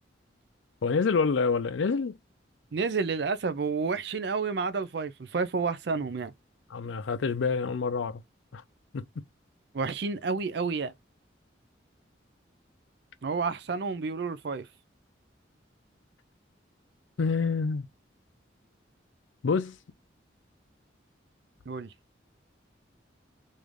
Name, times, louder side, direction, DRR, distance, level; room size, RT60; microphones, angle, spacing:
voice 1, 0.8-2.2 6.7-8.2 8.5-8.6 8.9-9.0 17.2-17.9 19.4-19.8, left 5 dB, 85° left, 0.5 m, -27 dB
voice 2, 2.7-6.3 9.7-10.9 13.2-14.7 21.7-21.9, right 4 dB, 60° right, 0.4 m, -30 dB
3.2 x 2.6 x 3.5 m
head